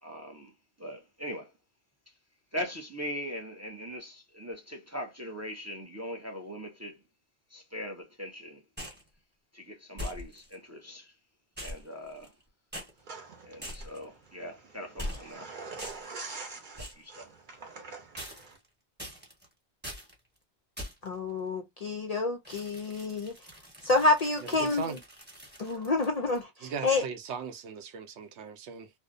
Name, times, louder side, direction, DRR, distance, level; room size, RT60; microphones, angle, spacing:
voice 1, 0.0-0.5 0.8-1.5 2.5-7.0 7.5-8.6 9.5-11.1 11.6-12.3 13.4-15.5 16.8-17.3, equal, 25° right, 0.3 m, -40 dB
sound 1, 8.8-9.1 10.0-10.5 11.6-12.4 12.7-12.9 13.6-14.0 15.0-15.4 15.8-16.2 16.8-17.1 18.2-18.6 19.0-19.4 19.8-20.1 20.8-21.1 22.4-26.4, equal, 10° right, 0.9 m, -42 dB
sound 2, 13.0-18.6, right 4 dB, 50° right, 0.8 m, -45 dB
voice 2, 21.0-23.3 23.8-25.0 25.6-27.0, left 3 dB, 55° left, 0.4 m, -28 dB
voice 3, 24.6-25.0 26.6-28.9, right 6 dB, 85° right, 0.9 m, -38 dB
2.6 x 2.1 x 2.4 m
omnidirectional pair, 1.1 m